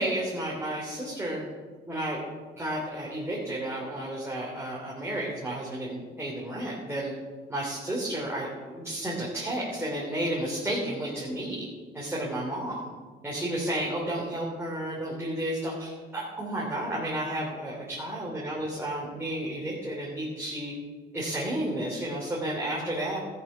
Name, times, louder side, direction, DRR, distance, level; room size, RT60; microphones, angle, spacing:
voice 1, 0.0-1.4 1.9-2.2 2.5-7.1 7.5-11.7 11.9-12.9 13.2-20.7 21.1-23.2, right 1 dB, 10° right, -5 dB, 3.1 m, -32 dB
13.5 x 7.0 x 6.2 m, 1.4 s
cardioid pair, 90°, 20 cm